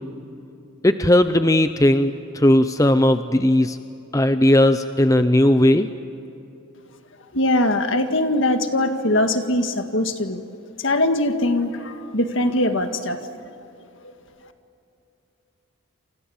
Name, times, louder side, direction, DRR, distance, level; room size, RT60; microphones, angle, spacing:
voice 1, 0.8-3.8 4.1-5.9, left 1 dB, 15° left, 10 dB, 0.6 m, -17 dB
voice 2, 7.3-10.4 10.8-13.3 14.0-14.1, left 1 dB, 60° left, 7 dB, 1.9 m, -21 dB
29.5 x 28.0 x 7.2 m, 2.8 s
head